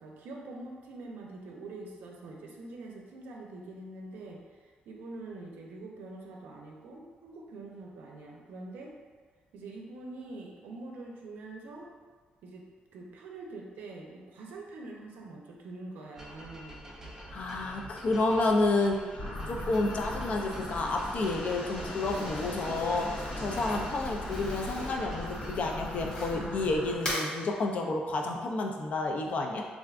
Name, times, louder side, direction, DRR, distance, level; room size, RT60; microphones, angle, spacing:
voice 1, 0.0-8.9 9.5-11.9 12.4-12.6 12.9-16.9, right 2 dB, 90° right, -1 dB, 0.5 m, -44 dB
sound 1, 16.1-25.8, equal, 15° right, 0.5 m, -47 dB
voice 2, 17.3-19.0 19.5-29.6, left 2 dB, 50° left, 2 dB, 0.3 m, -30 dB
sound 2, 19.2-27.0, left 1 dB, 70° left, 1.2 m, -39 dB
Crumpling crinkling, 22.0-26.6 26.9-27.3, equal, 30° left, 0.8 m, -39 dB
3.4 x 2.4 x 2.4 m, 1.5 s
cardioid pair, 140°, 3 cm